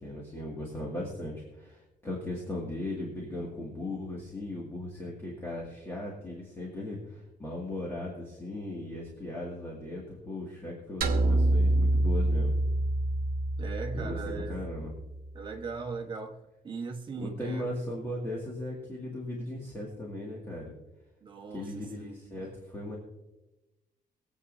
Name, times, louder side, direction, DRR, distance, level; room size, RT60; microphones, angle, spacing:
voice 1, 0.0-12.5 13.9-14.9 17.2-20.7 21.5-23.0, left 1 dB, 15° left, -4 dB, 2.2 m, -37 dB
sound 1, 11.0-15.4, right 1 dB, 75° right, 1.1 m, -27 dB
voice 2, 13.6-14.6 15.3-16.4 16.6-17.7 21.2-22.5, right 4 dB, 30° right, 3 dB, 1.2 m, -39 dB
23.0 x 8.4 x 2.7 m, 0.99 s
cardioid pair, 170°, 15 cm